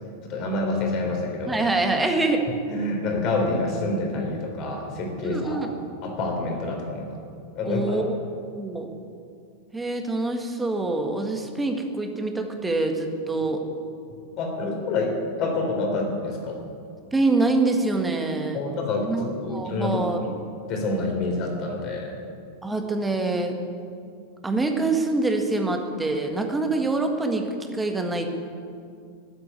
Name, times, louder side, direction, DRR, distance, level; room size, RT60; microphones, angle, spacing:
voice 1, 0.2-1.7 2.7-5.6 6.0-7.2 7.6-8.1 14.4-15.1 15.4-16.6 18.5-20.3 20.7-22.1, left 2 dB, 40° left, 2 dB, 3.6 m, -27 dB
voice 2, 1.5-2.4 5.2-5.7 7.6-8.2 8.5-8.9 9.7-13.6 17.1-18.6 19.0-20.2 22.6-23.5 24.4-27.4 27.7-28.3, right 2 dB, 10° right, 4 dB, 1.7 m, -25 dB
13.5 x 8.2 x 9.2 m, 2.4 s
figure-of-eight pair, 90°, 0 cm